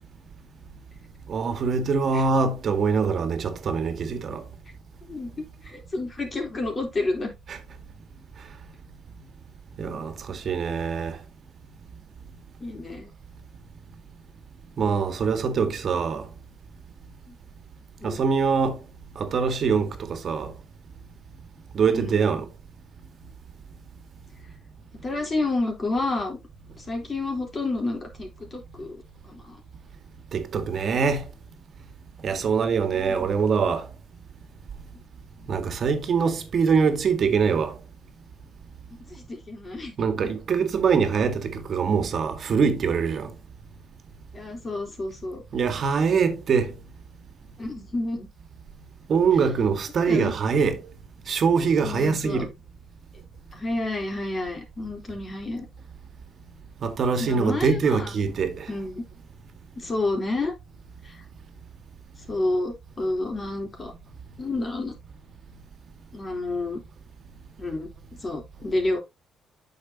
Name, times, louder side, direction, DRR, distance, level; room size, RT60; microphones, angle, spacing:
voice 1, 1.3-4.4 7.5-7.6 9.8-11.2 14.8-16.2 18.0-18.8 19.2-20.5 21.7-22.5 30.3-31.2 32.2-33.9 35.5-37.8 40.0-43.3 45.5-46.7 49.1-50.8 51.3-52.5 56.8-58.6, right 5 dB, 55° right, 1.8 m, -23 dB
voice 2, 5.1-7.3 12.6-13.1 17.3-17.4 18.0-18.2 21.9-22.2 25.0-26.4 26.8-29.6 32.6-32.7 33.0-33.3 35.4-35.5 39.1-40.3 44.3-45.4 47.6-48.3 50.1-50.3 51.8-52.5 53.5-55.7 57.2-58.2 58.7-59.0 59.8-60.5 61.0-61.2 62.3-63.9 64.4-64.9 66.1-66.8 67.6-67.9 68.2-69.0, left 2 dB, 35° left, 3.7 m, -30 dB
8.9 x 6.5 x 2.9 m
cardioid pair, 90°, 0 cm